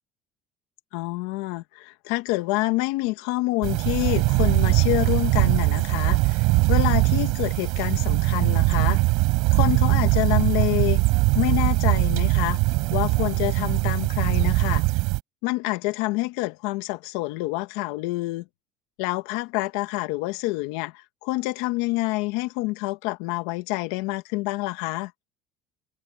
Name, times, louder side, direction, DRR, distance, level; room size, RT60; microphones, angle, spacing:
voice 1, 0.9-9.0 9.5-11.0 11.3-12.6 12.9-14.8 15.4-18.4 19.0-25.1, left 21 dB, 85° left, 1.7 m, -27 dB
sound 1, 3.6-15.2, right 25 dB, 75° right, 4.0 m, -21 dB
supercardioid pair, 120°, 0 cm